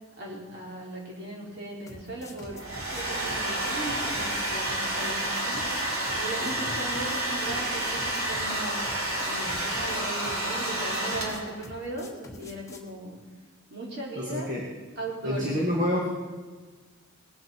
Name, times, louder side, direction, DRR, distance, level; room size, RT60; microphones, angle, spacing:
voice 1, 0.2-2.6 2.9-5.7 6.1-8.8 9.2-13.2 13.7-14.5 15.0-15.5, right 1 dB, 55° right, -3 dB, 4.3 m, -37 dB
sound 1, 1.9-12.9, left 2 dB, 15° left, 1.4 m, -46 dB
Domestic sounds home sounds, 2.4-11.6, right 1 dB, 85° right, 3.7 m, -30 dB
voice 2, 14.2-14.6 15.2-16.1, equal, 40° right, -4 dB, 2.1 m, -28 dB
19.5 x 7.8 x 5.9 m, 1.4 s
head